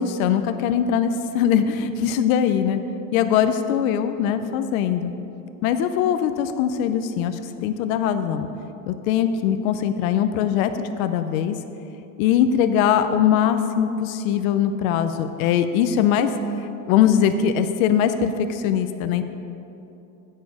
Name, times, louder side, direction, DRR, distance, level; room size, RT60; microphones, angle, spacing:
voice 1, 0.0-2.8 3.1-5.1 5.6-8.5 8.9-11.6 12.2-16.3 16.6-19.2, left 9 dB, 75° left, 9 dB, 0.6 m, -21 dB
9.4 x 7.7 x 4.7 m, 2.9 s
cardioid pair, 165°, 41 cm